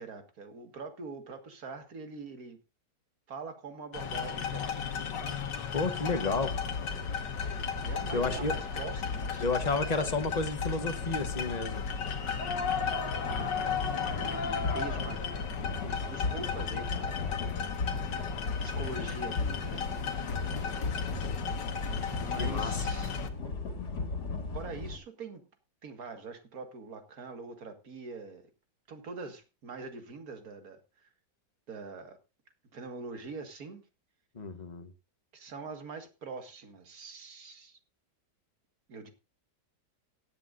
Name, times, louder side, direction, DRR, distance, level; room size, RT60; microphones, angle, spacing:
voice 1, 0.0-2.6 3.3-4.8 7.8-10.2 13.3-15.2 15.8-17.3 18.6-19.9 22.2-23.2 24.5-25.4 25.8-28.4 28.9-31.1 31.7-32.2 32.7-33.8 35.3-37.8 38.9-39.1, right 4 dB, 55° right, 2.1 m, -43 dB
sound 1, 3.9-23.3, left 6 dB, 80° left, 1.8 m, -35 dB
voice 2, 5.7-6.5 8.1-8.5 9.4-11.8 22.4-22.8 34.3-34.9, left 3 dB, 30° left, 0.9 m, -31 dB
sound 2, 6.3-25.0, left 4 dB, 65° left, 2.2 m, -37 dB
17.0 x 10.5 x 2.5 m
omnidirectional pair, 1.9 m